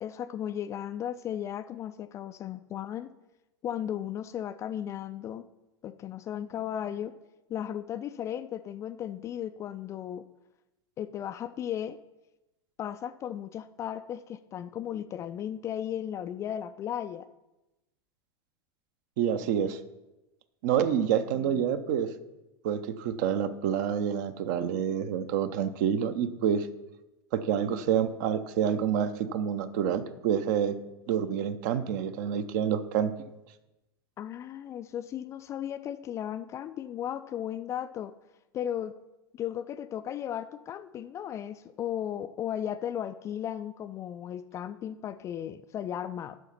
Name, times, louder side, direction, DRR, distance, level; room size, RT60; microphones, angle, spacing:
voice 1, 0.0-3.1 3.6-5.5 5.8-7.1 7.5-10.3 11.0-12.0 12.8-17.3 20.8-21.6 34.2-38.1 38.5-38.9 39.3-46.4, left 10 dB, 20° left, 11 dB, 0.3 m, -35 dB
voice 2, 19.2-19.8 20.6-22.1 22.6-26.7 27.3-30.8 31.1-33.1, right 8 dB, 45° right, 12 dB, 0.7 m, -28 dB
9.3 x 6.4 x 5.7 m, 1.0 s
figure-of-eight pair, 90°, 13 cm